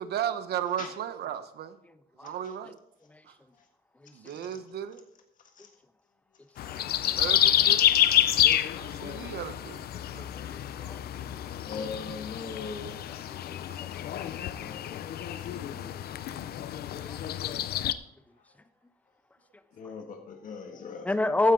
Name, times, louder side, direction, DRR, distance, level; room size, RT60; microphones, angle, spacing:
voice 1, 0.0-1.8 2.2-2.8 3.3-3.4 4.1-5.0 7.2-7.9 9.0-9.9 10.1-10.3, right 9 dB, 85° right, 1.1 m, -35 dB
voice 2, 4.2-4.6 5.4-5.7 6.5-6.8 8.1-8.6 11.6-13.0 14.6-14.8 15.4-15.9 18.4-18.5 19.7-21.1, left 5 dB, 55° left, 1.6 m, -42 dB
sound 1, 6.6-17.9, left 11 dB, 80° left, 0.6 m, -28 dB
voice 3, 13.5-13.9 14.1-14.3 15.3-15.4 15.8-15.9 16.9-17.2 21.1-21.5, left 2 dB, 10° left, 0.5 m, -29 dB
14.5 x 10.5 x 3.9 m
wide cardioid pair, 180°, 16 cm